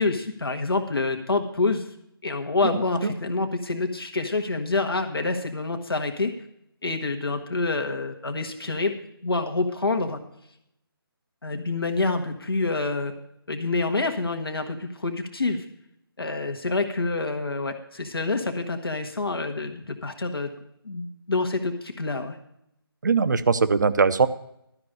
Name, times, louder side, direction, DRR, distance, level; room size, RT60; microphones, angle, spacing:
voice 1, 0.0-1.9 2.2-6.3 6.8-8.9 9.2-10.2 11.4-13.1 13.5-15.6 16.2-20.5 20.8-22.4, left 3 dB, 70° left, 4 dB, 1.6 m, -27 dB
voice 2, 23.0-24.3, right 5 dB, 50° right, 13 dB, 0.7 m, -20 dB
12.5 x 5.4 x 8.7 m, 0.77 s
figure-of-eight pair, 150°, 13 cm